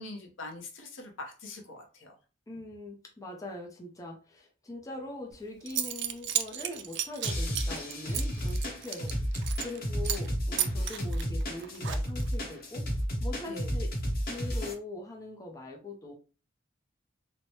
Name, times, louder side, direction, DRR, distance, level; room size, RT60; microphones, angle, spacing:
voice 1, 0.0-2.1 9.0-9.1 13.5-13.7, left 2 dB, 90° left, 2 dB, 0.7 m, -43 dB
voice 2, 2.5-13.9 14.3-16.1, left 2 dB, 20° left, 0 dB, 0.5 m, -42 dB
Zipper (clothing) / Coin (dropping), 5.3-5.4 5.7-9.8 10.0-10.3 10.6-12.3, right 11 dB, 65° right, 0.4 m, -33 dB
sound 1, 7.2-14.7, equal, 50° left, 0.8 m, -32 dB
3.1 x 2.1 x 2.7 m, 0.35 s
head